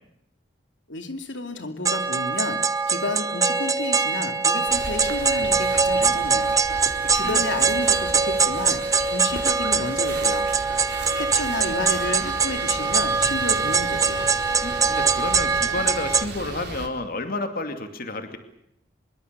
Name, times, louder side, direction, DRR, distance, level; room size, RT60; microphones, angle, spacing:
voice 1, 0.9-10.4 10.9-14.2, left 2 dB, 80° left, 7 dB, 2.7 m, -32 dB
sound 1, 1.8-16.2, right 5 dB, 20° right, 1.0 m, -23 dB
sound 2, 4.7-16.9, right 3 dB, 60° right, 4.1 m, -36 dB
voice 2, 14.6-18.4, left 2 dB, 50° left, 7 dB, 2.4 m, -31 dB
25.0 x 23.0 x 6.8 m, 0.79 s
head